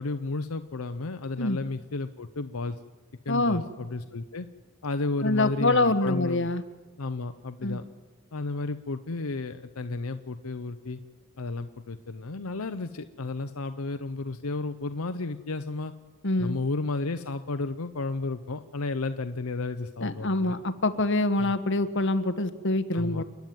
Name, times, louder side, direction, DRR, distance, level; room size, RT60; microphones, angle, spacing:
voice 1, 0.0-2.8 3.2-4.5 4.8-6.5 7.0-7.8 8.3-11.0 11.4-15.9 16.4-20.6 21.4-21.5 22.9-23.2, left 3 dB, 80° left, 10 dB, 0.8 m, -32 dB
voice 2, 3.3-3.6 5.2-6.6 7.6-7.8 16.2-16.6 20.0-23.2, left 2 dB, 60° left, 10 dB, 1.4 m, -25 dB
29.5 x 10.5 x 9.4 m, 1.3 s
head